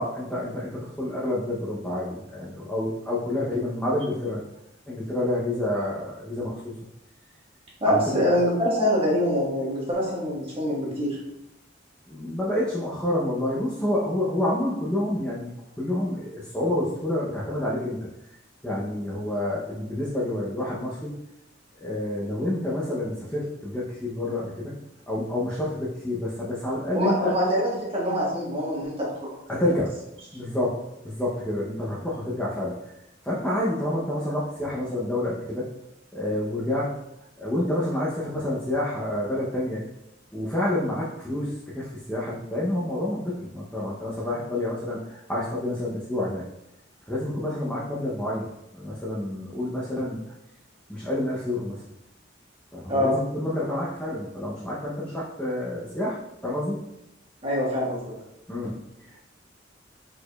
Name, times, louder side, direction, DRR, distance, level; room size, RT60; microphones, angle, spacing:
voice 1, 0.0-4.4 4.9-6.8 7.8-8.3 12.1-18.0 18.6-21.1 21.8-24.7 25.1-27.3 29.5-29.9 30.3-30.8 31.0-32.8 33.2-35.7 36.1-36.9 37.4-39.8 40.3-46.4 47.1-48.5 48.7-50.2 50.9-51.8 52.7-56.2 56.4-56.8 58.5-58.7 59.1-59.2, left 1 dB, 5° left, -7 dB, 0.7 m, -28 dB
voice 2, 7.8-11.2 26.9-29.3 52.9-53.1 57.4-58.0, equal, 30° right, -5 dB, 1.5 m, -24 dB
4.8 x 4.4 x 2.3 m, 0.86 s
head